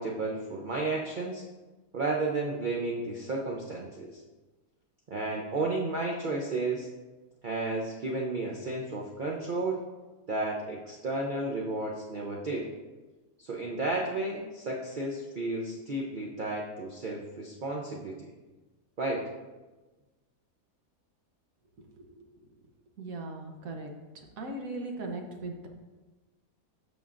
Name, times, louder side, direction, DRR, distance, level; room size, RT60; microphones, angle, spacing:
voice 1, 0.0-1.4 1.9-4.2 5.1-6.9 7.4-9.8 10.3-12.7 13.4-18.3 19.0-19.3, right 2 dB, 45° right, -2 dB, 0.7 m, -32 dB
voice 2, 23.0-25.7, right 2 dB, 75° right, 2 dB, 1.3 m, -39 dB
13.0 x 5.4 x 2.5 m, 1.2 s
omnidirectional pair, 1.5 m